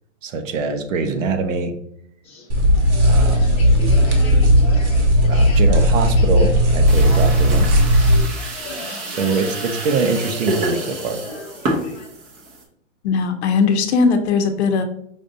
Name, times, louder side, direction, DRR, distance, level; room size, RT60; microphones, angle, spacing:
voice 1, 0.2-1.8 3.0-3.5 5.3-7.8 9.1-11.2, right 4 dB, 80° right, 7 dB, 0.8 m, -23 dB
sound 1, 2.2-12.1, left 2 dB, 15° left, 0.7 m, -36 dB
sound 2, 2.5-8.2, equal, 65° right, 1.2 m, -15 dB
sound 3, 6.9-12.6, right 2 dB, 20° right, 0.6 m, -29 dB
voice 2, 13.0-14.8, left 5 dB, 60° left, 6 dB, 0.7 m, -18 dB
5.2 x 2.6 x 2.6 m, 0.69 s
hypercardioid pair, 145°, 38 cm